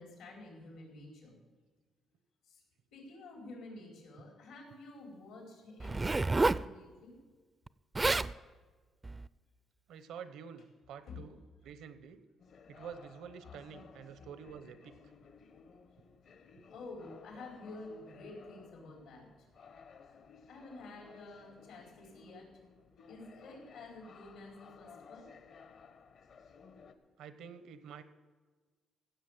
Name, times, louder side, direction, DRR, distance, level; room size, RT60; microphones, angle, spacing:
voice 1, 0.0-1.4 2.4-2.6 2.9-7.2 11.0-11.2 13.7-13.8 16.7-19.5 20.5-22.5 23.1-25.3, left 2 dB, 90° left, 0 dB, 4.4 m, -50 dB
Zipper (clothing), 5.8-6.7 7.7-7.8 7.9-8.3 9.0-9.3, right 3 dB, 20° right, 0.4 m, -29 dB
voice 2, 9.9-12.2 12.7-15.0 27.2-28.0, right 7 dB, 85° right, 12 dB, 0.9 m, -48 dB
sound 1, 12.4-26.9, left 5 dB, 65° left, 1.1 m, -57 dB
16.0 x 7.6 x 7.4 m, 1.4 s
cardioid pair, 90°, 0 cm